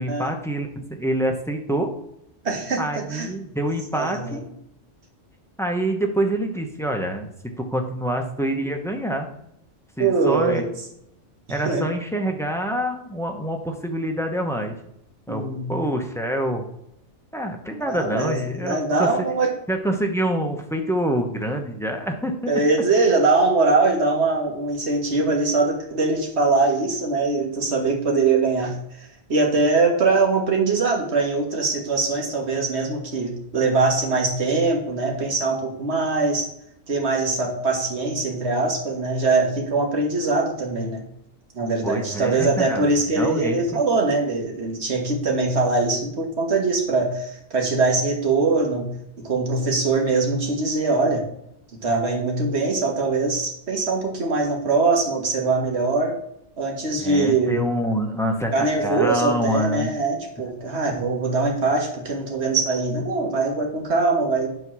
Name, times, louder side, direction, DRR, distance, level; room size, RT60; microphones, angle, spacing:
voice 1, 0.0-1.9 2.8-4.4 5.6-7.3 7.6-9.3 10.0-10.7 11.5-14.8 15.3-16.6 17.3-19.3 19.7-22.5 41.8-42.9 43.1-43.8 57.0-59.9, right 1 dB, 5° left, 3 dB, 0.8 m, -26 dB
voice 2, 2.4-3.3 3.9-4.4 10.0-10.7 11.5-11.9 15.3-15.7 17.8-19.5 22.5-28.7 29.3-36.5 36.9-41.0 41.6-48.9 49.2-51.2 51.8-56.1 56.6-57.7 58.5-64.5, right 3 dB, 65° right, 1 dB, 1.8 m, -22 dB
8.8 x 3.9 x 6.1 m, 0.78 s
omnidirectional pair, 1.2 m